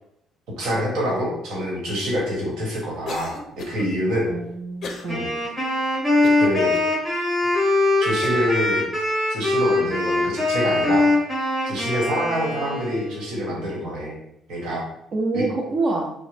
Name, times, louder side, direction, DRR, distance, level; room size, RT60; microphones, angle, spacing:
voice 1, 0.6-4.3 5.1-5.3 6.4-6.8 8.0-8.8 9.3-11.1 11.7-14.2 14.5-14.8 15.3-15.4, equal, 75° right, -3 dB, 1.2 m, -26 dB
Cough, 3.1-3.9 4.8-5.1 5.6-5.7 6.2-6.9 7.5-7.6 8.2-8.5, left 3 dB, 50° left, 0.4 m, -35 dB
voice 2, 4.2-5.3 15.1-16.1, right 2 dB, 40° right, 1 dB, 0.4 m, -26 dB
Wind instrument woodwind instrument, 5.1-13.3, left 2 dB, 10° right, 1.1 m, -22 dB
3.6 x 2.0 x 3.2 m, 0.76 s
cardioid pair, 125°, 0 cm